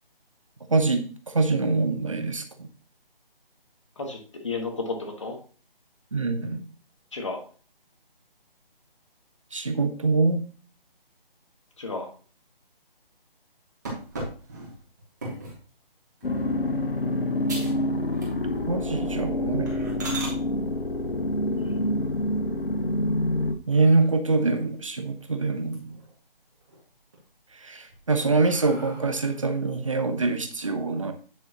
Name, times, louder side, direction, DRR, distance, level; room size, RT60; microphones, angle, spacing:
voice 1, 0.7-2.7 6.1-6.6 9.5-10.5 18.7-19.8 23.7-26.0 27.5-31.1, right 3 dB, 35° right, 7 dB, 1.0 m, -24 dB
voice 2, 4.4-5.4 7.1-7.4 11.8-12.1 21.6-21.8, left 3 dB, 30° left, 3 dB, 1.6 m, -32 dB
sound 1, 13.8-15.6 16.2-16.5 16.9-17.0 17.4-17.8 18.1-18.7 19.0-19.1 19.7-20.4 22.4-23.0 23.5-23.6 24.0-24.1 24.4-25.2 25.5-26.1 26.5-27.2 27.7-29.4, right 2 dB, 20° right, 2.0 m, -39 dB
sound 2, 16.2-23.6, left 1 dB, 70° left, 1.5 m, -27 dB
9.7 x 6.8 x 3.0 m, 0.40 s
hypercardioid pair, 175°, 30 cm